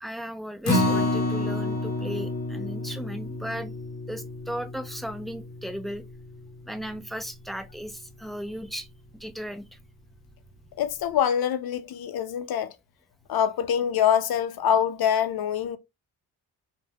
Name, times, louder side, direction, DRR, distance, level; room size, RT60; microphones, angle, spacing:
voice 1, 0.0-3.7 4.1-6.0 6.6-8.9 9.2-9.8, equal, ahead, 0.3 m, -36 dB
Acoustic guitar, 0.6-7.0 7.4-7.5 7.9-8.0, left 2 dB, 40° left, 1.0 m, -29 dB
voice 2, 10.8-12.7 13.3-15.8, left 9 dB, 60° left, 0.5 m, -25 dB
3.2 x 2.1 x 2.2 m
cardioid pair, 65°, 42 cm